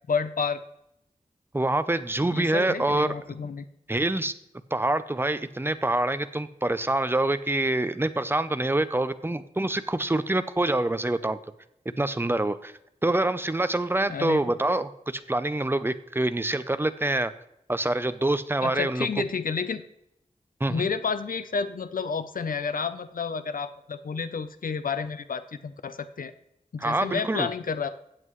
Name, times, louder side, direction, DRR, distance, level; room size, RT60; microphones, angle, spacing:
voice 1, 0.1-0.6 2.3-3.7 14.1-14.4 18.6-19.8 20.7-26.3 26.7-27.9, left 5 dB, 90° left, 12 dB, 0.6 m, -30 dB
voice 2, 1.5-3.1 3.9-4.3 4.7-11.4 12.0-12.7 13.0-17.3 17.7-19.1 20.6-20.9 26.8-27.5, right 2 dB, 15° right, 12 dB, 0.6 m, -26 dB
16.0 x 7.6 x 3.1 m, 0.80 s
wide cardioid pair, 80°, 14 cm